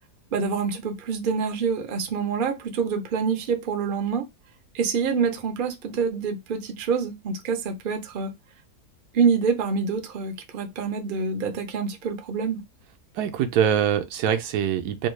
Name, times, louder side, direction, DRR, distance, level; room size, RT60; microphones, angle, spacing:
voice 1, 0.3-4.3 4.7-8.3 9.1-12.6, right 5 dB, 55° right, 0.5 m, -26 dB
voice 2, 13.1-15.1, right 9 dB, 75° right, 1.1 m, -23 dB
3.4 x 2.3 x 3.1 m
omnidirectional pair, 1.8 m